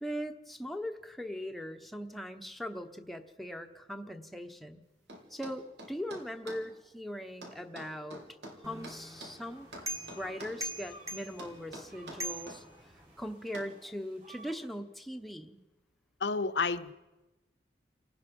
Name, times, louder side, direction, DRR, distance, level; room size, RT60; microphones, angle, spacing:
voice 1, 0.0-4.8 5.3-8.2 8.6-9.9 10.2-12.6 13.2-15.6, equal, ahead, 5 dB, 1.0 m, -40 dB
sound 1, 5.1-6.7 7.4-9.4 9.7-10.7 11.4-12.6 13.5-13.8, right 1 dB, 75° right, 3.8 m, -47 dB
sound 2, 8.6-13.3, equal, 20° right, 1.5 m, -43 dB
sound 3, 8.8-14.8, right 2 dB, 50° right, 7.2 m, -58 dB
voice 2, 16.2-16.9, left 4 dB, 80° left, 12 dB, 0.9 m, -30 dB
29.5 x 18.5 x 5.4 m, 1.1 s
head